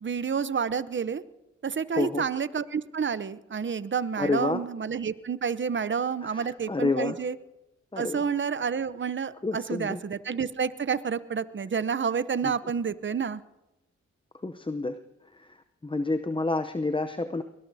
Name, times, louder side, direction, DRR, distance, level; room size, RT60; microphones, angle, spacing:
voice 1, 0.0-1.2 1.6-7.4 8.0-13.4, right 6 dB, 40° right, 15 dB, 0.8 m, -29 dB
voice 2, 1.9-2.3 4.2-4.6 6.2-7.2 7.9-8.2 9.4-10.0 12.4-12.5 14.4-15.0 15.3-15.6 15.8-17.4, left 3 dB, 20° left, 9 dB, 0.7 m, -29 dB
22.0 x 19.5 x 2.8 m, 0.95 s
supercardioid pair, 45°, 29 cm